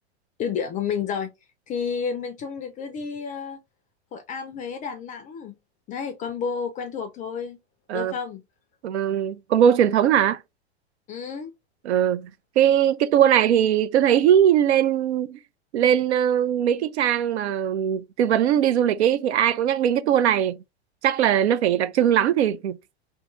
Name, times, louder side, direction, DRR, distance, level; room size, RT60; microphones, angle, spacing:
voice 1, 0.4-1.3 1.7-3.6 4.1-5.6 5.9-7.6 7.9-8.4 11.1-11.5, left 6 dB, 25° left, 0.4 m, -30 dB
voice 2, 8.8-10.4 11.8-12.3 12.6-15.4 15.7-20.6 21.0-22.8, right 10 dB, 80° right, 0.5 m, -20 dB
2.7 x 2.3 x 3.0 m
hypercardioid pair, 110°, 33 cm